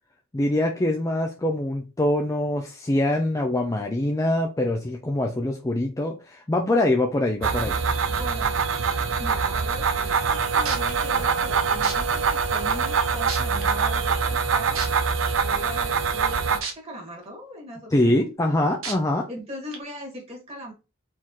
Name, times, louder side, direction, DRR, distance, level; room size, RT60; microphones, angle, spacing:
voice 1, 0.3-7.8 17.9-19.2, left 1 dB, 15° left, 2 dB, 0.4 m, -24 dB
sound 1, 7.4-16.6, right 5 dB, 70° right, 0.6 m, -24 dB
voice 2, 8.1-8.5 9.2-14.8 15.3-18.2 19.3-20.7, left 1 dB, 30° right, -2 dB, 1.9 m, -40 dB
sound 2, 10.6-10.9 11.8-11.9 12.7-12.8 13.3-13.6 14.7-14.9 16.6-16.7 17.2-17.3 18.8-18.9 19.7-19.8, right 5 dB, 90° right, 1.2 m, -30 dB
4.4 x 3.7 x 3.0 m, 0.29 s
head